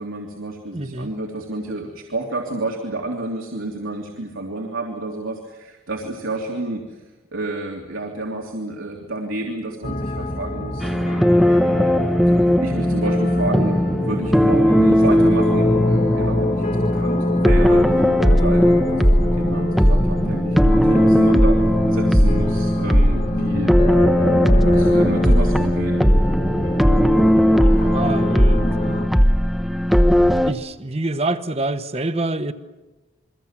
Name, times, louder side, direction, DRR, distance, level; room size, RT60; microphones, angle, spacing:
voice 1, 0.0-7.0 7.3-11.3 12.1-21.6 21.9-24.3 24.6-26.1, right 2 dB, 85° right, 1 dB, 3.1 m, -30 dB
voice 2, 0.7-1.1 27.6-29.0 30.5-32.5, right 2 dB, 30° right, 10 dB, 1.2 m, -26 dB
sound 1, 9.8-29.1, left 1 dB, 40° left, 1.6 m, -26 dB
sound 2, 10.8-30.5, equal, ahead, 1.0 m, -17 dB
29.5 x 23.0 x 7.4 m, 1.1 s
head